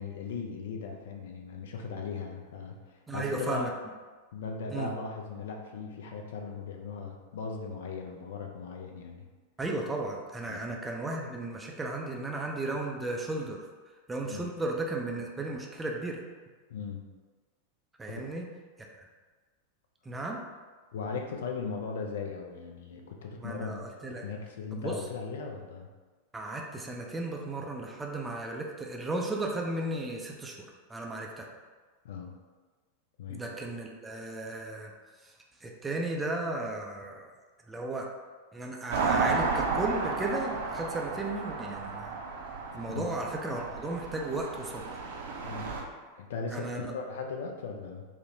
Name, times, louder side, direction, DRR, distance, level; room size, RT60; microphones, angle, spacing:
voice 1, 0.0-3.7 4.3-9.3 10.5-10.6 14.3-14.5 16.7-17.0 18.1-18.2 20.9-23.8 24.1-25.9 32.0-32.3 33.2-33.4 42.9-43.1 45.4-45.7 46.1-48.1, left 5 dB, 60° left, 2 dB, 0.4 m, -38 dB
voice 2, 3.1-3.7 4.7-4.9 9.6-13.6 14.1-16.2 18.0-18.5 20.1-20.4 23.4-24.2 24.7-25.0 26.3-30.6 30.9-31.5 33.3-34.9 35.6-37.3 37.7-38.1 38.5-42.1 42.7-44.8 46.5-46.8, right 2 dB, 10° right, 0 dB, 0.4 m, -35 dB
sound 1, 38.9-45.8, right 4 dB, 65° right, 0.5 m, -33 dB
3.7 x 2.1 x 2.7 m, 1.4 s
figure-of-eight pair, 90°, 0 cm